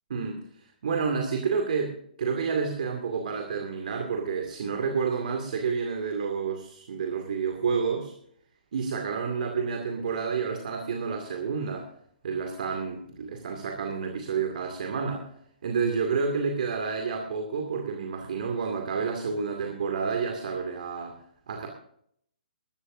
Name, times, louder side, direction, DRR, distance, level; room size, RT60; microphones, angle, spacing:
voice 1, 0.1-0.4 0.8-8.1 8.7-11.9 12.2-15.3 15.6-21.2 21.5-21.7, right 5 dB, 60° right, 3 dB, 2.4 m, -29 dB
20.5 x 12.5 x 2.7 m, 0.67 s
figure-of-eight pair, 125°, 5 cm